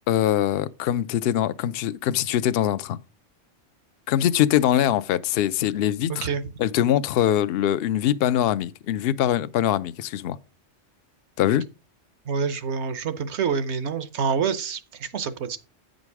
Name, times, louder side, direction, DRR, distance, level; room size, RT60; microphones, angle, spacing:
voice 1, 0.1-3.0 4.1-6.3 6.6-10.4 11.4-11.6, left 11 dB, 65° left, 0.7 m, -23 dB
voice 2, 6.1-6.4 12.3-15.6, right 6 dB, 70° right, 1.1 m, -27 dB
9.0 x 5.2 x 4.7 m
omnidirectional pair, 1.3 m